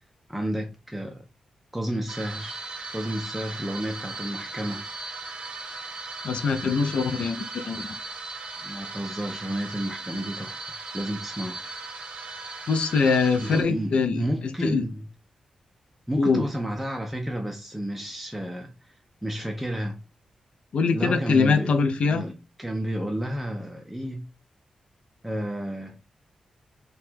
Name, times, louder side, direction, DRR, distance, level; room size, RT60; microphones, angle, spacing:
voice 1, 0.3-1.3 1.7-2.6 2.9-4.8 8.6-11.6 13.4-15.1 16.1-18.9 19.2-20.0 20.9-24.2 25.2-26.0, equal, 5° right, 0.4 m, -31 dB
sound 1, 2.1-13.6, right 3 dB, 55° right, 0.6 m, -38 dB
voice 2, 6.2-7.9 12.7-14.2 14.6-14.8 16.2-16.4 20.7-22.2, left 5 dB, 65° left, 0.4 m, -23 dB
2.8 x 2.2 x 3.3 m
wide cardioid pair, 125°, 2 cm